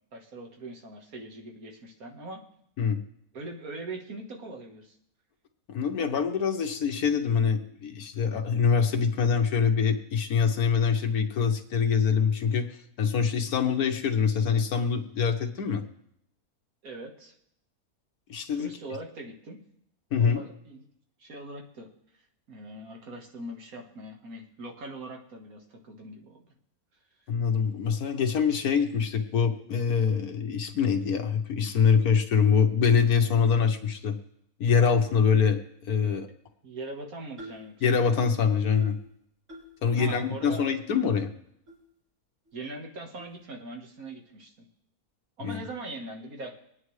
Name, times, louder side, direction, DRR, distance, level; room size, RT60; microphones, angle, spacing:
voice 1, 0.1-2.4 3.3-5.0 16.8-17.3 18.5-19.6 20.1-20.8 21.2-21.9 22.5-26.5 36.6-38.0 40.0-40.6 42.5-44.5 45.4-46.6, right 2 dB, 65° right, 2 dB, 2.0 m, -41 dB
voice 2, 5.7-15.8 18.3-18.7 20.1-20.4 27.3-34.1 34.6-36.3 37.8-39.0 39.8-41.3 45.4-45.6, left 6 dB, 75° left, 5 dB, 1.5 m, -24 dB
sound 1, 37.4-37.7 38.1-38.4 38.8-39.1 39.5-39.8 40.2-40.3 40.9-41.1 41.7-41.8 42.5-42.6 43.2-43.4, equal, 20° right, 4.0 m, -47 dB
24.5 x 9.6 x 3.2 m, 0.74 s
omnidirectional pair, 1.6 m